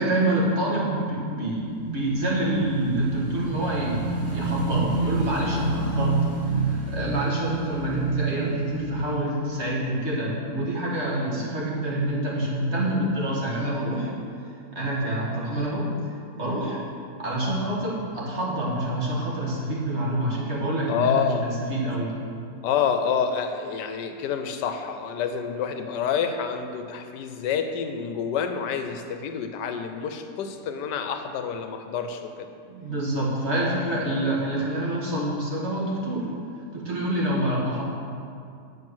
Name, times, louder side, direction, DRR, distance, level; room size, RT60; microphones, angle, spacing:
voice 1, 0.0-6.1 6.6-14.1 14.8-15.9 16.4-16.8 17.2-22.1 32.6-36.3 36.7-37.8, right 1 dB, 40° right, -5 dB, 1.9 m, -27 dB
Motorcycle / Engine, 1.4-10.0, right 4 dB, 10° right, 1.0 m, -29 dB
voice 2, 11.2-11.5 20.9-21.5 22.6-32.5, left 7 dB, 85° left, 7 dB, 1.2 m, -28 dB
9.0 x 5.4 x 6.2 m, 2.4 s
omnidirectional pair, 1.8 m